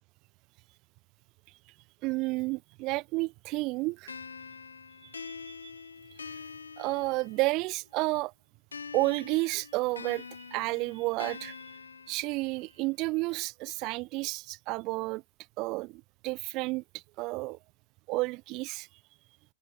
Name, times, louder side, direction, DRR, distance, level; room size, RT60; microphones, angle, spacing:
voice 1, 2.0-4.1 5.1-5.7 6.8-8.3 8.9-11.6 12.1-15.2 15.6-17.6 18.1-18.9, right 23 dB, 40° right, 1.2 m, -31 dB
sound 1, 4.1-7.7 8.7-12.7, left 5 dB, 75° left, 2.5 m, -45 dB
figure-of-eight pair, 90°, 0 cm